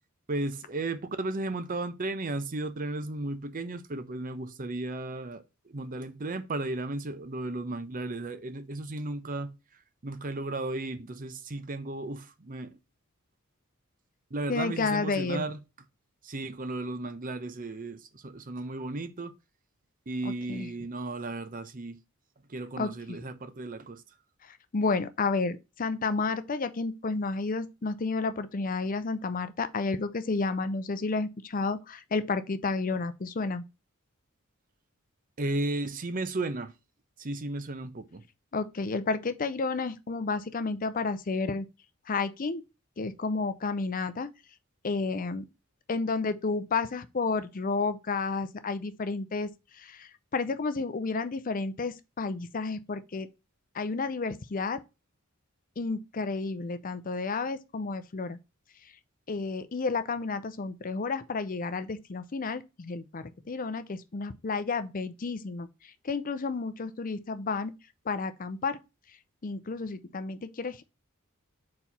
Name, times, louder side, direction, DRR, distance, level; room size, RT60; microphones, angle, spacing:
voice 1, 0.3-9.5 10.0-12.7 14.3-15.6 16.2-19.3 20.1-22.0 22.5-24.0 35.4-36.7 37.2-38.2, right 2 dB, 40° right, 0.7 m, -34 dB
voice 2, 14.5-15.4 20.2-20.7 22.8-22.9 24.4-33.6 38.5-41.7 42.1-42.6 43.0-44.3 44.8-45.5 45.9-53.3 53.7-54.8 55.8-58.4 58.8-58.9 59.3-67.7 68.0-68.8 69.4-70.8, left 4 dB, 40° left, 0.5 m, -31 dB
4.6 x 4.3 x 5.3 m
head